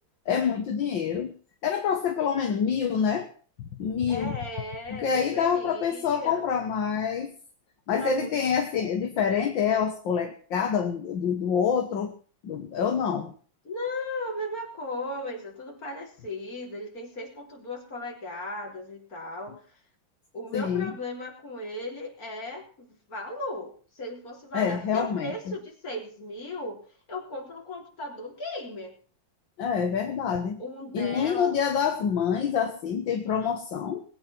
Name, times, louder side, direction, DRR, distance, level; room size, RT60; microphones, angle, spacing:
voice 1, 0.3-1.3 1.6-3.3 3.6-4.4 4.9-7.3 7.9-12.1 12.4-13.3 20.5-20.9 24.5-25.6 29.6-30.6 30.9-34.0, left 7 dB, 70° left, 5 dB, 2.0 m, -26 dB
voice 2, 4.1-6.4 8.0-8.3 13.6-19.6 20.3-26.8 27.1-28.9 30.6-31.5, left 1 dB, 45° left, 0 dB, 4.3 m, -36 dB
20.5 x 8.9 x 6.0 m, 0.42 s
omnidirectional pair, 2.2 m